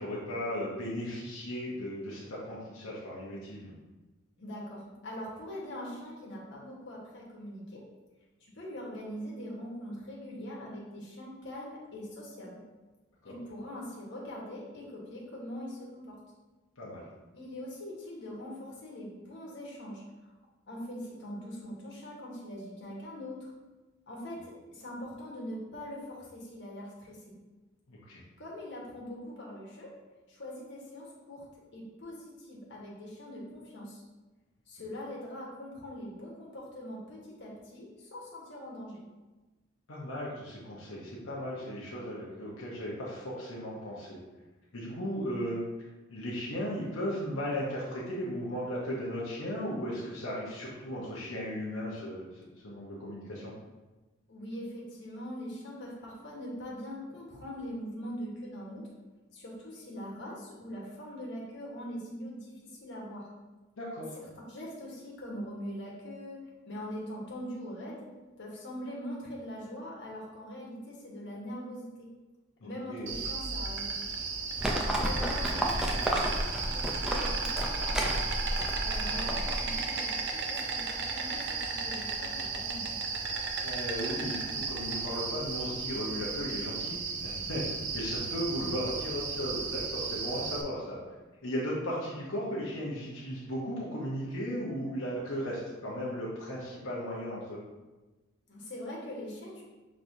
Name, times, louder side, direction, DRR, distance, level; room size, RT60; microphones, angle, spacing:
voice 1, 0.0-3.7 13.2-13.4 16.8-17.0 27.9-28.2 39.9-44.2 44.7-45.6 46.1-53.5 63.8-64.2 72.6-73.2 83.6-91.0 91.4-97.6, equal, 90° left, -5 dB, 0.9 m, -36 dB
voice 2, 4.4-7.8 8.4-12.6 13.2-16.2 17.3-20.0 20.7-23.5 24.1-27.2 28.4-29.9 30.3-31.4 31.7-34.0 34.7-39.0 54.3-58.8 59.3-63.3 64.5-68.1 68.4-71.9 72.6-74.0 74.9-78.2 78.8-82.9 98.5-99.6, equal, 60° left, -4 dB, 1.3 m, -42 dB
Insect, 73.1-90.6, right 4 dB, 60° right, 0.6 m, -34 dB
Livestock farm animals working animals, 74.6-79.8, equal, 5° right, 0.4 m, -31 dB
6.0 x 3.2 x 2.7 m, 1.2 s
head